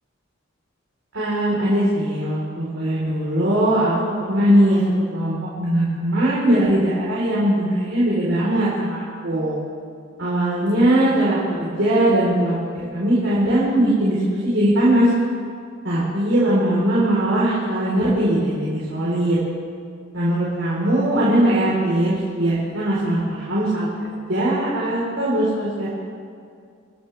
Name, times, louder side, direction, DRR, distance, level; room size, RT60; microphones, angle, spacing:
voice 1, 1.1-4.8 5.1-9.5 10.2-15.1 15.8-19.4 20.1-23.9 24.3-25.9, right 1 dB, 65° right, -7 dB, 3.9 m, -20 dB
27.0 x 13.0 x 3.4 m, 2.3 s
head